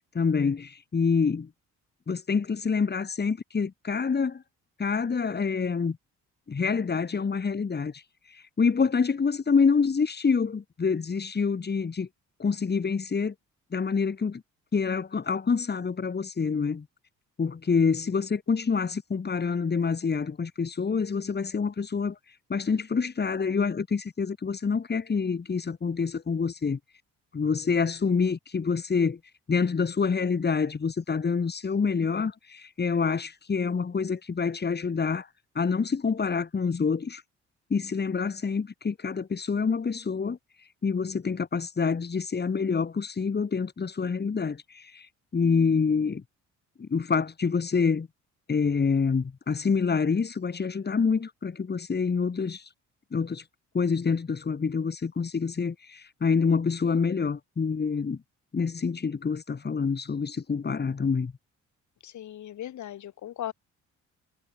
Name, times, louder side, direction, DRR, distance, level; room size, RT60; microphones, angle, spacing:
voice 1, 0.1-1.5 2.1-4.4 4.8-6.0 6.5-8.0 8.3-12.1 12.4-13.3 13.7-14.4 14.7-16.9 17.4-22.2 22.5-26.8 27.3-29.2 29.5-35.3 35.6-37.2 37.7-40.4 40.8-46.2 46.8-48.1 48.5-52.7 53.1-53.4 53.7-58.2 58.5-61.3, left 5 dB, 35° left, 3.6 m, -27 dB
voice 2, 62.0-63.5, left 12 dB, 70° left, 3.7 m, -38 dB
cardioid pair, 90°, 30 cm